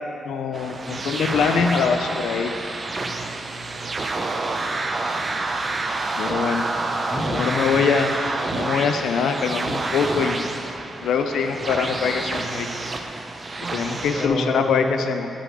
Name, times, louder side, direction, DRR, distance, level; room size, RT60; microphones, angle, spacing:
voice 1, 0.2-2.5 6.2-6.6 7.3-8.1 8.5-10.5 11.0-12.7 13.7-15.3, left 6 dB, 90° left, 7 dB, 0.3 m, -23 dB
sound 1, 0.5-14.3, right 3 dB, 30° right, 0.5 m, -28 dB
voice 2, 4.5-5.2 6.5-7.9 14.1-15.1, left 2 dB, 25° left, 2 dB, 0.8 m, -30 dB
7.5 x 5.1 x 5.0 m, 2.6 s
cardioid pair, 130°, 0 cm